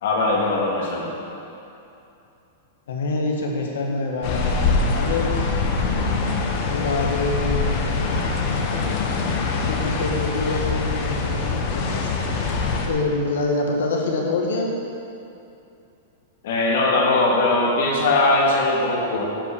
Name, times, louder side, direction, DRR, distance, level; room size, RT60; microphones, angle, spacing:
voice 1, 0.0-1.1 16.4-19.2, left 2 dB, 55° left, -3 dB, 2.0 m, -20 dB
voice 2, 2.9-5.6 6.6-8.1 9.5-12.1 12.9-14.7, left 2 dB, 90° left, 0 dB, 1.8 m, -26 dB
sound 1, 4.2-12.9, left 4 dB, 35° left, 1.0 m, -24 dB
9.8 x 5.9 x 7.0 m, 2.7 s
supercardioid pair, 180°, 0 cm